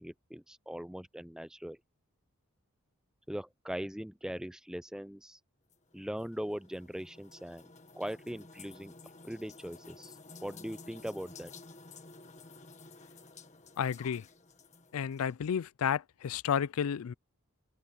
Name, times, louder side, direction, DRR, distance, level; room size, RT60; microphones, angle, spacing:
voice 1, 0.0-1.8 3.3-5.4 5.9-7.7 7.9-8.9 9.2-11.5, equal, 5° right, 0.4 m, -40 dB
sound 1, 5.7-15.3, left 3 dB, 35° left, 1.6 m, -53 dB
voice 2, 13.8-14.3 14.9-17.1, left 8 dB, 80° left, 0.4 m, -32 dB
head